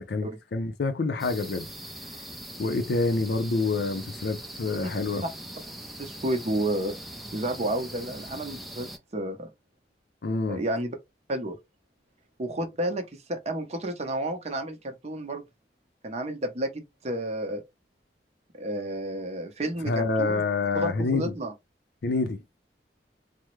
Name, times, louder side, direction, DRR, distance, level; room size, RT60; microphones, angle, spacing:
voice 1, 0.0-1.7 2.6-5.2 10.2-10.6 19.8-21.3 22.0-22.4, left 3 dB, 65° left, 0.5 m, -27 dB
sound 1, 1.2-9.0, right 1 dB, ahead, 0.4 m, -41 dB
voice 2, 6.0-7.0 7.3-9.5 10.5-11.0 11.3-11.6 12.4-15.4 16.0-17.6 18.6-20.4 20.7-21.5, right 1 dB, 40° right, 0.7 m, -31 dB
3.4 x 2.0 x 3.0 m
head